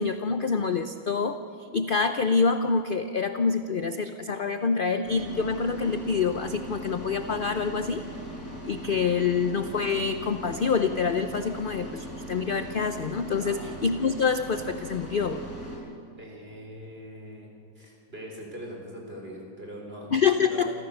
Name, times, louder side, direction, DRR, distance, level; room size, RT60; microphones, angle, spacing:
voice 1, 0.0-1.4 1.7-8.0 8.7-15.4 20.1-20.7, left 5 dB, 50° left, 9 dB, 0.6 m, -26 dB
sound 1, 5.0-15.8, right 1 dB, 10° right, 6.7 m, -39 dB
voice 2, 16.2-17.5 17.7-20.1 20.4-20.7, equal, 40° right, -1 dB, 4.5 m, -42 dB
27.5 x 14.5 x 6.8 m, 2.5 s
omnidirectional pair, 1.6 m